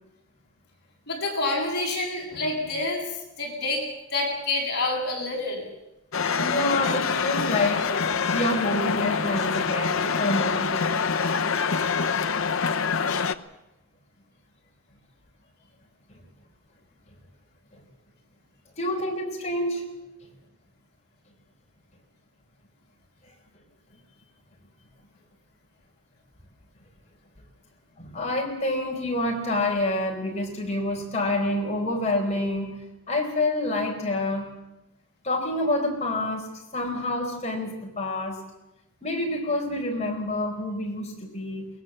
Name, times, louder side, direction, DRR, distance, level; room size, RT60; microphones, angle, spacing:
voice 1, 1.1-3.1 3.4-5.7, left 2 dB, 45° left, -1 dB, 7.9 m, -28 dB
sound 1, 6.1-13.4, left 5 dB, 65° left, 1.0 m, -25 dB
voice 2, 6.4-7.9 8.3-10.8 17.7-17.8 18.8-19.9 28.0-32.8 33.1-34.5 35.2-38.4 39.0-41.7, left 1 dB, 30° left, 1 dB, 4.7 m, -27 dB
22.5 x 20.5 x 7.6 m, 0.95 s
head